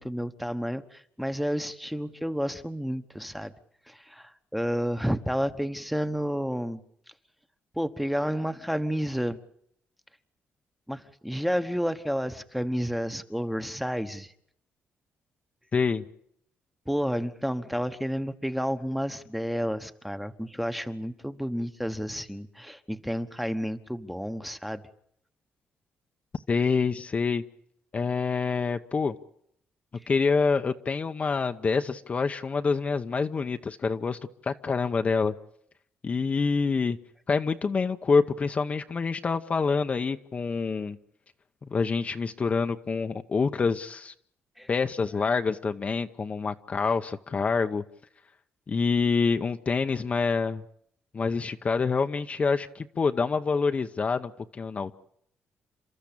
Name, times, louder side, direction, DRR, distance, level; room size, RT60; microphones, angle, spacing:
voice 1, 0.0-3.5 3.9-6.8 7.8-9.4 10.9-14.3 16.9-24.8 44.6-44.7, equal, ahead, 9 dB, 1.2 m, -30 dB
voice 2, 15.7-16.0 26.5-27.4 27.9-29.1 30.1-35.3 36.0-37.0 37.3-41.0 41.7-44.1 44.7-47.8 48.7-50.6 51.1-54.9, left 4 dB, 30° left, 7 dB, 0.9 m, -26 dB
29.5 x 13.5 x 8.6 m, 0.70 s
cardioid pair, 125°, 4 cm